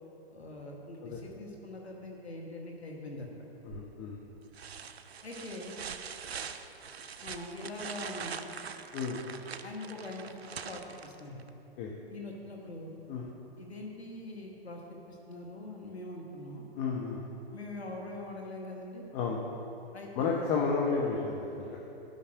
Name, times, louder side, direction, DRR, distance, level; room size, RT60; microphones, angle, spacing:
voice 1, 0.3-3.4 5.2-5.8 7.2-8.4 9.6-10.4 10.6-11.4 12.1-12.9 13.6-14.8 15.1-16.6 17.5-19.0 19.9-20.5, left 2 dB, 90° left, -1 dB, 1.3 m, -43 dB
voice 2, 3.6-4.2 8.9-9.2 11.8-11.9 13.1-13.2 16.7-17.2 19.1-19.4 20.2-21.8, left 5 dB, 35° left, -2 dB, 1.0 m, -31 dB
sound 1, 3.7-4.1 4.5-11.5 13.3-13.4, right 6 dB, 80° right, 0.6 m, -43 dB
12.0 x 5.8 x 4.9 m, 3.0 s
figure-of-eight pair, 110°, 31 cm